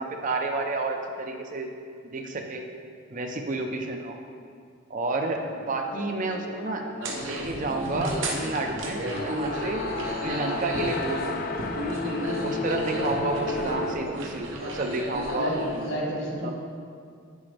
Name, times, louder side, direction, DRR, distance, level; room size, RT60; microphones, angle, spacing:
voice 1, 0.0-1.7 2.0-2.6 3.1-4.1 4.9-6.8 7.1-9.9 10.2-11.7 12.3-15.5 16.4-16.5, right 3 dB, 40° right, 3 dB, 0.5 m, -30 dB
sound 1, 5.4-13.9, left 3 dB, 45° left, 0.4 m, -34 dB
sound 2, 7.0-15.9, right 1 dB, 70° right, 1.0 m, -33 dB
voice 2, 15.2-16.5, equal, 65° left, -3 dB, 1.7 m, -30 dB
9.8 x 5.2 x 3.3 m, 2.3 s
head